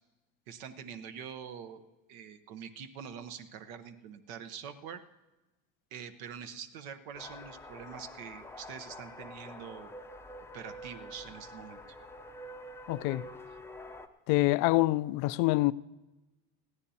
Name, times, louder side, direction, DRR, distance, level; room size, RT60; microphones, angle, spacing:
voice 1, 0.5-5.0 5.9-10.0 10.5-11.8, right 7 dB, 70° right, 1.0 m, -45 dB
sound 1, 7.1-14.1, left 1 dB, 5° left, 0.6 m, -47 dB
voice 2, 12.9-13.2 14.3-15.7, left 20 dB, 55° left, 0.5 m, -26 dB
20.5 x 14.5 x 2.8 m
supercardioid pair, 95°, 43 cm